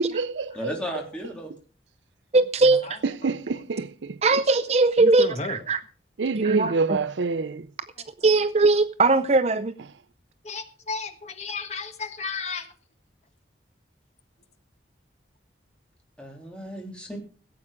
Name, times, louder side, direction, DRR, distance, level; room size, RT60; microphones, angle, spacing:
voice 1, 0.0-1.0 3.0-4.2 6.2-7.7, right 4 dB, 85° right, 0.6 m, -26 dB
voice 2, 0.5-1.5 16.2-17.2, equal, 5° left, 3.4 m, -34 dB
voice 3, 2.3-3.0 4.2-5.8 6.3-6.7 8.2-9.7, right 3 dB, 35° right, 0.5 m, -20 dB
voice 4, 5.0-5.6 10.4-12.7, left 4 dB, 40° left, 1.4 m, -33 dB
16.5 x 8.6 x 5.0 m
head